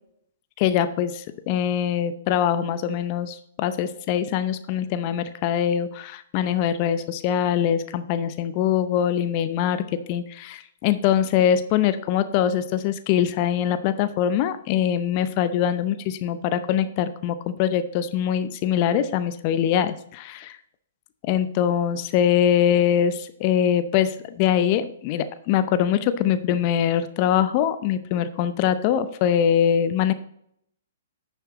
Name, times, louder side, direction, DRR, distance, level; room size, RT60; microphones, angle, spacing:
voice 1, 0.6-20.6 21.2-30.1, left 9 dB, 40° left, 12 dB, 0.6 m, -23 dB
10.5 x 6.7 x 2.9 m, 0.73 s
hypercardioid pair, 120°, 0 cm